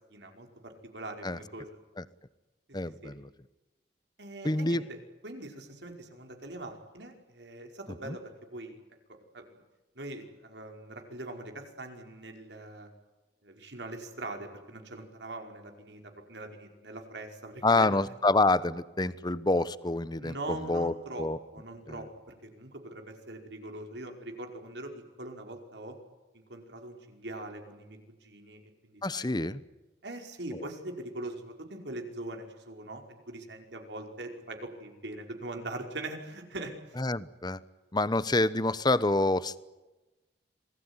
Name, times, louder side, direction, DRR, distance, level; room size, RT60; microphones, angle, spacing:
voice 1, 0.1-1.7 2.7-3.1 4.2-5.0 5.2-8.2 8.5-8.8 9.3-9.6 10.0-12.9 13.4-18.0 20.2-21.3 21.5-26.0 26.3-29.3 30.0-36.7, right 2 dB, 80° right, 3 dB, 5.1 m, -42 dB
voice 2, 2.7-3.3 4.4-4.8 8.0-8.2 17.6-21.4 21.9-22.0 29.0-29.6 30.5-30.7 37.0-37.6 37.9-39.6, left 2 dB, 25° left, 16 dB, 1.0 m, -27 dB
27.0 x 19.5 x 9.8 m, 1.1 s
head